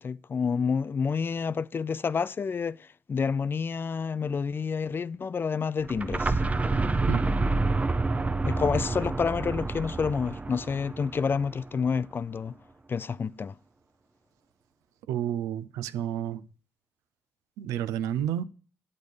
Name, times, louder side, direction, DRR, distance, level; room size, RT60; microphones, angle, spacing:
voice 1, 0.0-6.4 8.4-12.5 12.9-13.6, left 5 dB, 40° left, 0.4 m, -29 dB
sound 1, 5.8-11.6, right 3 dB, 25° right, 0.6 m, -28 dB
voice 2, 15.1-16.4 17.6-18.4, right 10 dB, 85° right, 0.5 m, -30 dB
8.5 x 6.5 x 6.5 m
supercardioid pair, 50°, 6 cm